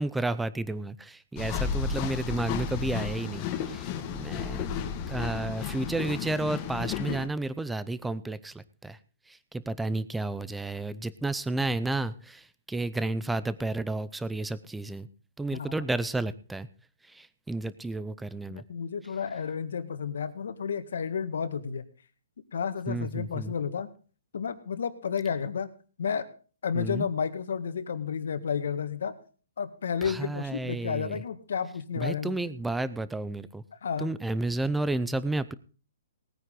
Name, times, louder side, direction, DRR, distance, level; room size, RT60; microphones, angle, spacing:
voice 1, 0.0-3.9 4.1-4.7 5.1-9.0 9.3-15.1 15.4-16.7 17.1-18.6 22.9-23.5 26.7-27.1 30.0-31.2 32.0-33.6 34.0-35.5, right 2 dB, 5° right, 17 dB, 0.5 m, -32 dB
sound 1, 1.4-7.3, left 6 dB, 25° left, 1.5 m, -33 dB
voice 2, 18.5-21.9 22.5-23.9 24.3-25.7 26.0-26.3 26.6-29.2 29.6-32.4 33.8-34.1, left 6 dB, 70° left, 11 dB, 1.7 m, -31 dB
19.0 x 9.6 x 3.8 m, 0.38 s
hypercardioid pair, 165°, 0 cm